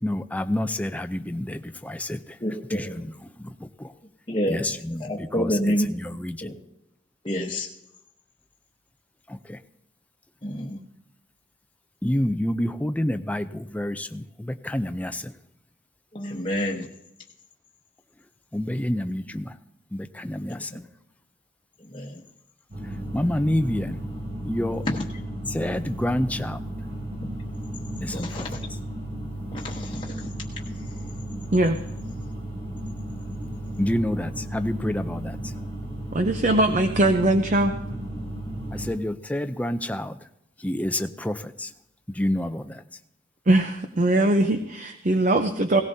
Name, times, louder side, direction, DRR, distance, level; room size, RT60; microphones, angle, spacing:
voice 1, 0.0-2.2 2.7-3.1 3.4-3.5 3.8-3.9 4.4-5.6 5.9-6.5 9.3-9.6 12.0-15.3 18.5-19.5 19.9-20.7 23.1-24.0 24.5-24.8 25.5-26.6 28.0-28.5 33.8-35.4 38.7-40.2 40.6-41.7 42.1-42.8, left 1 dB, 10° left, 9 dB, 0.5 m, -28 dB
voice 2, 2.4-3.0 4.3-4.6 5.0-5.9 6.4-6.5 7.2-7.7 10.4-10.8 16.1-16.9 20.7-20.8 21.9-22.2 24.8-25.0 28.1-28.6 29.5-30.3, equal, 30° left, -3 dB, 1.1 m, -28 dB
sound 1, 22.7-38.9, right 1 dB, 60° right, 7.0 m, -34 dB
voice 3, 36.1-37.8 43.5-45.8, right 1 dB, 45° right, 7 dB, 0.7 m, -21 dB
17.5 x 17.5 x 2.7 m, 0.82 s
head